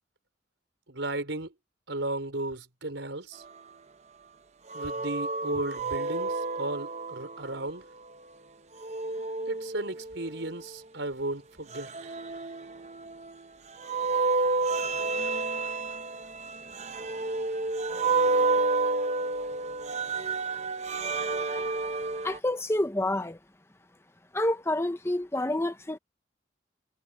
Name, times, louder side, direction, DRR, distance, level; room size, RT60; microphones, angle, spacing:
voice 1, 0.9-1.5 1.9-3.4 4.7-7.8 9.5-11.9, right 2 dB, 75° right, 4.7 m, -34 dB
sound 1, 4.7-7.6 8.8-10.6 11.7-13.3 13.8-22.4, right 3 dB, 35° right, 0.7 m, -30 dB
voice 2, 22.2-23.4 24.3-26.0, left 1 dB, 15° left, 0.9 m, -28 dB
head